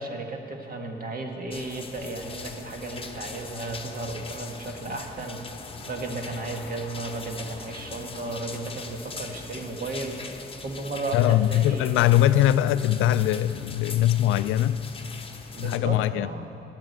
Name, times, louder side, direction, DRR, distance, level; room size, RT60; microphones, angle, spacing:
voice 1, 0.0-10.2 10.6-12.0 15.5-16.5, right 2 dB, 45° right, 3 dB, 1.6 m, -34 dB
sound 1, 1.5-15.8, left 4 dB, 25° left, 0.9 m, -41 dB
voice 2, 11.1-14.8 15.6-16.3, left 12 dB, 90° left, 14 dB, 0.4 m, -21 dB
9.7 x 8.9 x 8.0 m, 2.7 s
cardioid pair, 90°, 20 cm